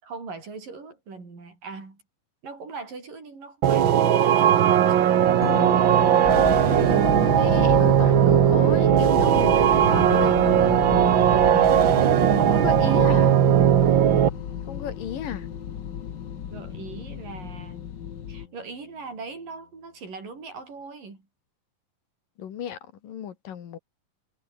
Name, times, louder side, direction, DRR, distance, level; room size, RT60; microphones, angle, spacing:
voice 1, 0.0-2.0 2.4-5.2 11.1-11.2 12.4-13.3 16.1-16.2 16.5-17.8 18.3-21.3, right 4 dB, 85° right, 8.6 m, -40 dB
sound 1, 3.6-14.3, right 10 dB, 65° right, 1.2 m, -18 dB
sound 2, 5.4-18.7, left 4 dB, 25° left, 2.3 m, -36 dB
sound 3, 6.2-18.5, left 9 dB, 65° left, 1.0 m, -33 dB
voice 2, 7.0-10.4 12.5-13.4 14.7-15.5 22.4-23.8, left 9 dB, 85° left, 3.9 m, -33 dB
omnidirectional pair, 3.8 m